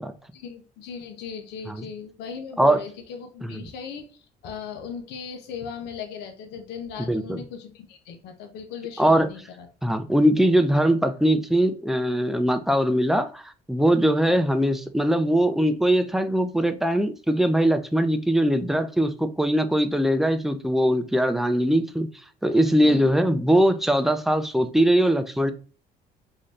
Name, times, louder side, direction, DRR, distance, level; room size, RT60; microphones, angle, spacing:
voice 1, 0.3-9.7 22.8-23.1, left 7 dB, 85° left, 0.8 m, -38 dB
voice 2, 7.1-7.4 9.0-9.3 9.8-13.4 13.7-22.1 22.4-25.5, right 1 dB, ahead, 0.5 m, -21 dB
3.9 x 2.7 x 3.2 m
cardioid pair, 110°, 17 cm